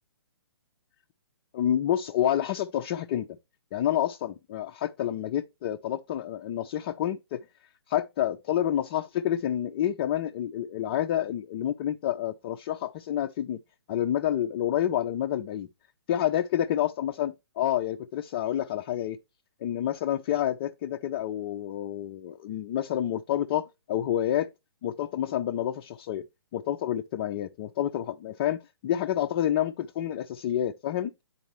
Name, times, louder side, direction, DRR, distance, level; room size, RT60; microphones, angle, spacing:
voice 1, 1.5-3.3 3.7-7.4 7.9-13.6 13.9-15.7 16.1-19.2 19.6-24.5 24.8-26.2 26.5-31.1, left 11 dB, 25° left, 0.3 m, -28 dB
9.9 x 4.1 x 3.0 m
figure-of-eight pair, 130°, 14 cm